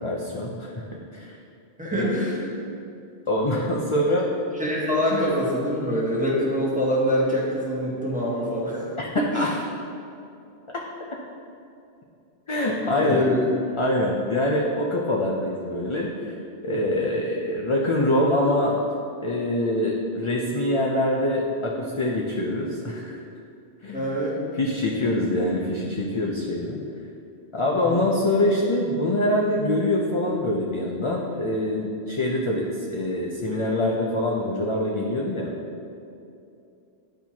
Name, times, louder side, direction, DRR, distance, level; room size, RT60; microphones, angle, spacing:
voice 1, 0.0-0.8 1.1-1.3 1.8-2.1 3.3-4.3 9.0-9.5 12.5-13.2 13.8-16.4 16.6-18.8 19.2-23.2 23.8-24.1 24.5-26.8 27.5-35.5, left 1 dB, 40° left, -2 dB, 0.4 m, -24 dB
voice 2, 1.8-2.5 4.6-8.9 9.2-9.5 12.9-13.4 23.9-24.4 27.7-28.0, equal, 5° right, -6 dB, 1.2 m, -25 dB
10.0 x 4.4 x 2.8 m, 2.6 s
omnidirectional pair, 1.1 m